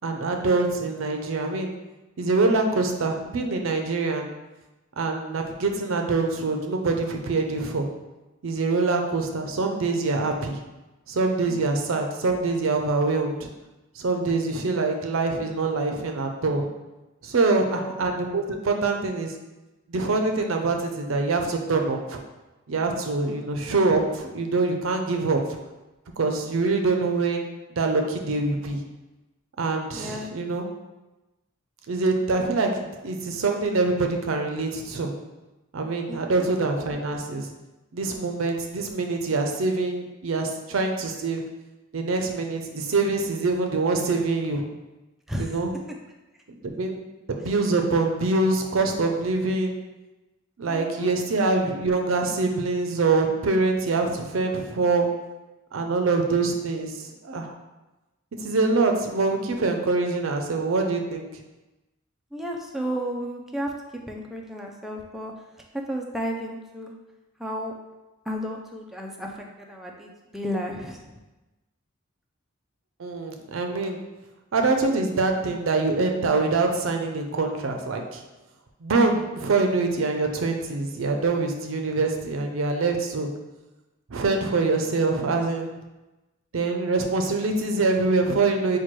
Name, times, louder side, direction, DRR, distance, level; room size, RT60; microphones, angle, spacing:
voice 1, 0.0-1.7 2.2-4.3 5.0-7.9 8.4-10.6 11.1-13.5 14.0-16.7 17.2-19.3 19.9-22.2 22.7-25.4 26.2-27.5 27.8-28.8 29.6-30.7 31.9-35.1 35.7-37.5 37.9-41.4 41.9-44.6 45.4-45.7 46.6-47.0 47.3-49.8 50.6-55.1 55.7-56.9 57.2-57.5 58.4-61.3 73.0-74.0 74.5-78.2 78.8-83.3 84.1-85.7 86.5-88.8, right 3 dB, 75° right, 4 dB, 0.5 m, -24 dB
voice 2, 11.5-11.9 17.7-18.0 23.3-23.4 29.9-30.3 36.1-36.5 45.3-45.5 50.6-51.1 62.3-63.7 64.1-65.3 65.7-66.9 67.4-67.7 68.3-71.1, equal, ahead, 0 dB, 0.3 m, -33 dB
4.4 x 2.2 x 4.5 m, 1.1 s
head